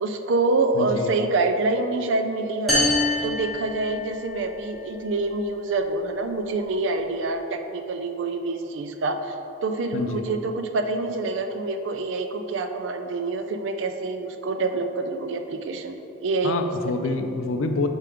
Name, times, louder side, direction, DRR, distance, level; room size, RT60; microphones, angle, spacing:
voice 1, 0.0-2.9 3.2-9.3 9.6-15.9 16.2-16.7 17.1-17.2, right 3 dB, 65° right, 7 dB, 0.4 m, -26 dB
voice 2, 0.7-1.1 9.9-10.3 16.4-17.9, left 3 dB, 80° left, 6 dB, 0.4 m, -27 dB
sound 1, 2.7-4.4, left 2 dB, ahead, 1.1 m, -24 dB
5.0 x 4.4 x 4.9 m, 3.0 s
head